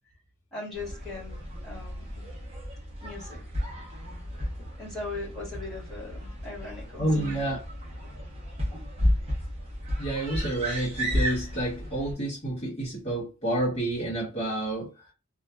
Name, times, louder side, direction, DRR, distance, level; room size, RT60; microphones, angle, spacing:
voice 1, 0.5-2.2 3.0-3.4 4.8-7.5 8.7-8.8, left 3 dB, ahead, 1.5 m, -40 dB
sound 1, 0.7-12.1, equal, 30° right, 0.9 m, -33 dB
voice 2, 7.0-7.6 10.0-14.9, right 1 dB, 30° left, 1.0 m, -29 dB
2.7 x 2.4 x 2.3 m
head